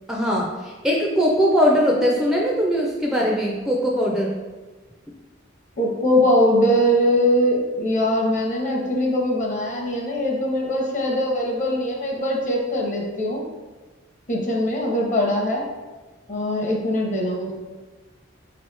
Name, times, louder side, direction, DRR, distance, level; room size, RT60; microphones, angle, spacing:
voice 1, 0.1-4.3, equal, 5° right, -3 dB, 0.3 m, -20 dB
voice 2, 5.8-13.4 14.3-15.6 16.3-17.5, equal, 40° left, -1 dB, 0.8 m, -21 dB
4.6 x 3.0 x 3.2 m, 1.2 s
head